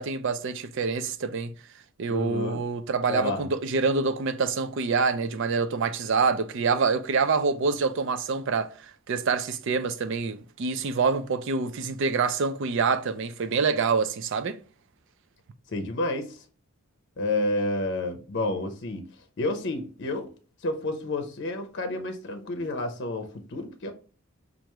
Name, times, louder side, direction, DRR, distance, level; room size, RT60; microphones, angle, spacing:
voice 1, 0.0-1.5 2.0-14.6, right 4 dB, 60° right, 0.4 m, -26 dB
voice 2, 2.1-2.7 3.1-3.5 15.7-16.4 17.2-19.0 19.4-20.3 20.6-23.9, left 2 dB, 55° left, 0.6 m, -30 dB
4.6 x 2.5 x 3.0 m
head